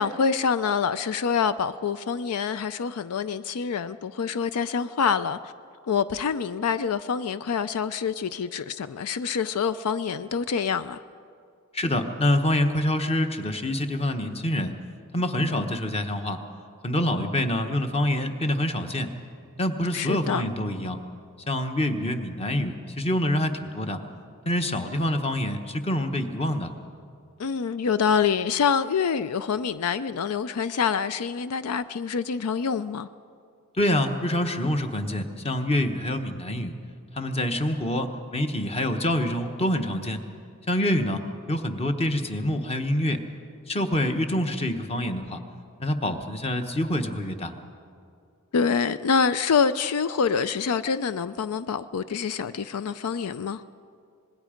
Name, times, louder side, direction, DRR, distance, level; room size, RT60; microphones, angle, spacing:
voice 1, 0.0-5.4 5.9-11.0 19.9-20.4 27.4-33.1 48.5-53.6, left 6 dB, 80° left, 14 dB, 0.5 m, -26 dB
voice 2, 11.7-14.7 15.1-16.4 16.8-19.1 19.6-21.0 21.5-24.0 24.4-26.7 33.8-36.7 37.2-40.2 40.7-41.2 41.5-43.2 43.7-45.4 45.8-47.5, left 1 dB, 25° left, 7 dB, 1.1 m, -26 dB
25.5 x 20.0 x 5.1 m, 2.4 s
head